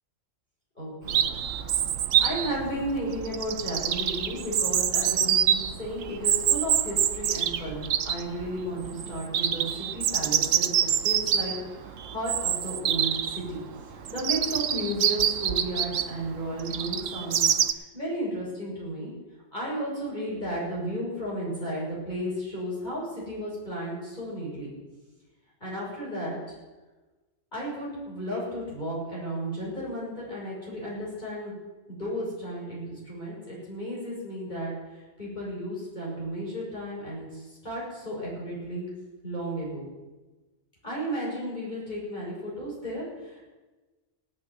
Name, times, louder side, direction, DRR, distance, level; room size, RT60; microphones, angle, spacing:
voice 1, 0.8-1.3 2.2-10.7 11.0-19.1 19.5-24.7 25.6-26.4 27.5-31.5 31.9-38.9 39.2-39.9 40.8-43.4, equal, 35° left, -7 dB, 6.7 m, -34 dB
Chirp tweet, 1.1-17.7, right 9 dB, 75° right, 1.1 m, -26 dB
17.5 x 6.4 x 9.6 m, 1.2 s
omnidirectional pair, 1.3 m